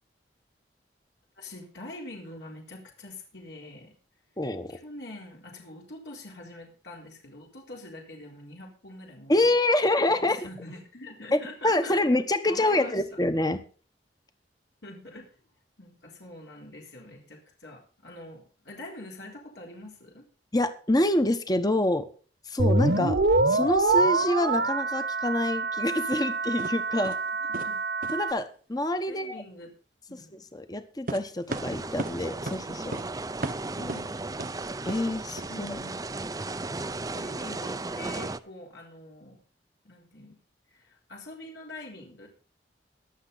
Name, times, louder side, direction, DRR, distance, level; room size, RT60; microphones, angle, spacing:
voice 1, 1.4-3.9 4.7-9.3 10.1-12.0 12.5-13.0 14.8-15.3 15.8-20.2 27.5-27.8 29.1-29.7 30.1-30.4 33.8-34.2 35.5-36.0 37.1-39.4 39.8-40.4 40.7-42.3, left 2 dB, 75° left, -1 dB, 3.9 m, -44 dB
voice 2, 4.4-4.8 9.3-10.4 11.3-13.6 20.5-22.0 22.5-23.2 23.5-27.1 28.1-29.4 30.3-33.0 34.8-35.8, left 1 dB, 20° left, 9 dB, 1.1 m, -26 dB
sound 1, 22.6-28.3, right 3 dB, 75° right, 1.5 m, -25 dB
sound 2, 26.1-26.2 26.6-26.8 27.0-27.3 27.5-27.7 28.0-28.2 31.1-32.2 32.5-32.6 32.9-33.1 33.4-34.0 34.4-34.5 34.9-35.0 35.4-35.5, right 2 dB, 50° right, 1.0 m, -35 dB
sound 3, 31.5-38.4, right 2 dB, 20° right, 0.6 m, -35 dB
22.0 x 7.4 x 4.1 m, 0.39 s
head